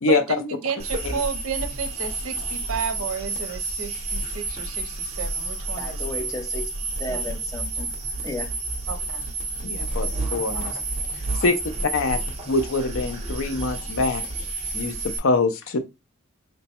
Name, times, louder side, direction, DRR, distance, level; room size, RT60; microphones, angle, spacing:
voice 1, 0.0-6.0 7.1-7.2 8.9-9.2 10.5-10.8, right 6 dB, 70° right, 0.5 m, -32 dB
sound 1, 0.8-15.2, right 3 dB, 30° right, 0.7 m, -30 dB
voice 2, 5.8-6.7 7.0-7.9 8.2-8.5, left 1 dB, 15° left, 0.5 m, -33 dB
voice 3, 9.6-10.7 11.2-11.6 11.9-12.2 12.5-14.2 14.7-15.8, left 3 dB, 65° left, 0.5 m, -24 dB
3.2 x 2.1 x 4.2 m
head